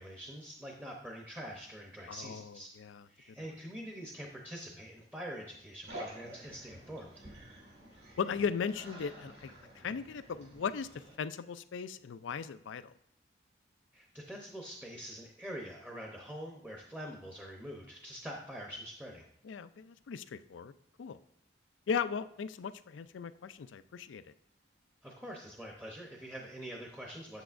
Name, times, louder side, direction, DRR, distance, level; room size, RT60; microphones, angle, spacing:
voice 1, 0.0-2.7 3.1-7.2 13.9-19.3 25.0-27.4, equal, 10° right, -1 dB, 0.7 m, -45 dB
voice 2, 2.1-3.0 8.2-10.9 11.2-12.9 19.4-20.7 21.0-21.2 21.9-24.2, left 6 dB, 85° left, 13 dB, 0.4 m, -37 dB
sound 1, 5.9-11.1, right 1 dB, 60° right, 2.2 m, -49 dB
8.1 x 7.8 x 2.5 m, 0.75 s
head